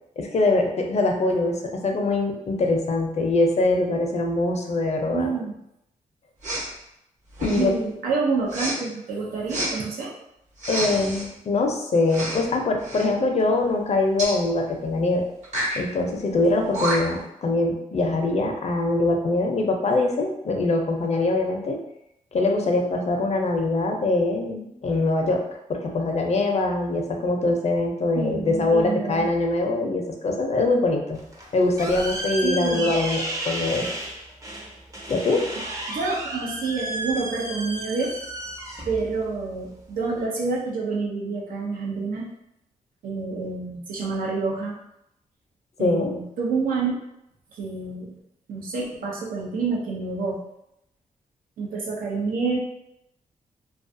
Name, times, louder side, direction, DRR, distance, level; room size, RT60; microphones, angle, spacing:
voice 1, 0.2-5.3 7.4-7.8 10.7-15.3 15.7-21.8 22.3-25.4 25.7-31.2 31.5-33.9 35.1-35.4 45.8-46.2, left 2 dB, 50° left, 3 dB, 0.5 m, -23 dB
voice 2, 5.1-5.6 7.5-10.1 28.2-29.3 32.4-32.9 35.9-38.2 38.9-42.3 43.0-44.8 45.8-46.9 47.5-48.2 48.5-50.4 51.6-52.6, right 4 dB, 85° right, -2 dB, 0.6 m, -28 dB
Respiratory sounds, 6.4-6.7 7.3-7.8 8.5-8.8 9.5-9.7 10.6-11.3 12.1-12.5 12.8-13.1 14.2-14.4 15.4-15.8 16.4-16.5 16.7-17.2, right 1 dB, 55° right, 1.1 m, -29 dB
sound 1, 31.2-40.2, right 1 dB, 25° right, 0.5 m, -33 dB
2.3 x 2.3 x 2.6 m, 0.82 s
cardioid pair, 65°, 14 cm